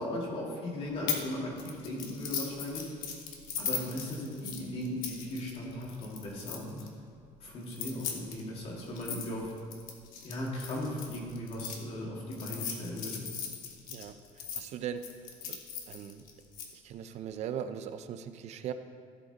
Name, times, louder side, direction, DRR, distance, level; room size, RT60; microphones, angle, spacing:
voice 1, 0.0-2.9 3.6-6.8 7.4-9.5 10.2-13.2, left 1 dB, 45° left, -3 dB, 2.2 m, -37 dB
sound 1, 1.1-1.3 1.6-6.9 7.6-11.8 12.3-14.6 15.0-16.7, left 7 dB, 85° left, 1.2 m, -38 dB
voice 2, 13.9-15.0 15.5-15.6 15.9-16.2 16.7-18.7, right 9 dB, 50° right, 10 dB, 0.5 m, -39 dB
15.0 x 5.1 x 4.0 m, 2.1 s
cardioid pair, 165°, 14 cm